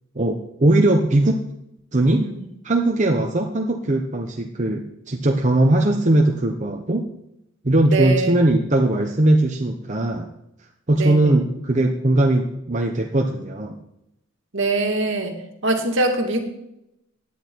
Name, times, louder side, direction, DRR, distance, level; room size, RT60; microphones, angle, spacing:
voice 1, 0.2-1.4 1.9-2.3 2.6-7.0 7.6-10.3 10.9-13.8, right 1 dB, 35° right, 2 dB, 1.0 m, -19 dB
voice 2, 7.9-8.3 11.0-11.4 14.5-15.3 15.6-16.4, right 2 dB, 65° right, 4 dB, 2.1 m, -23 dB
17.0 x 10.0 x 4.6 m, 0.84 s
head